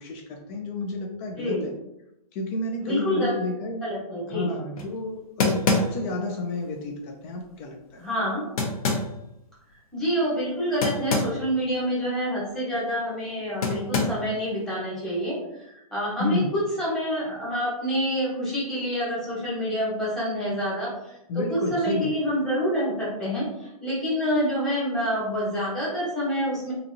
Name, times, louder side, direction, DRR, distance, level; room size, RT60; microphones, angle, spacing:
voice 1, 0.0-1.7 2.3-3.8 4.3-8.0 16.2-16.5 21.3-22.1, left 2 dB, 20° left, 1 dB, 0.3 m, -30 dB
voice 2, 1.3-1.7 2.8-3.4 3.8-4.5 8.0-8.4 9.7-26.7, equal, 5° left, -8 dB, 1.1 m, -27 dB
sound 1, 4.8-4.9 5.4-6.2 8.6-9.1 10.8-11.4 11.7-11.8 13.6-14.3, left 3 dB, 65° left, 0.8 m, -25 dB
2.9 x 2.5 x 2.6 m, 0.84 s
hypercardioid pair, 145°, 19 cm